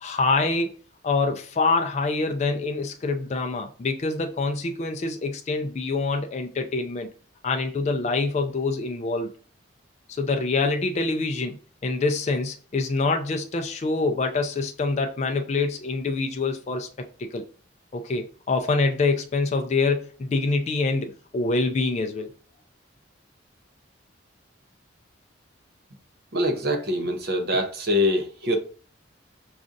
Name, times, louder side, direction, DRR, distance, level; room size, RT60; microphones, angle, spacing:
voice 1, 0.0-0.8 1.0-7.1 7.4-9.3 10.1-11.5 11.8-16.9 17.2-17.4 17.9-22.3, left 3 dB, 35° left, 0.3 m, -25 dB
voice 2, 26.3-28.6, left 1 dB, 50° right, 0.6 m, -24 dB
5.1 x 2.4 x 2.5 m
head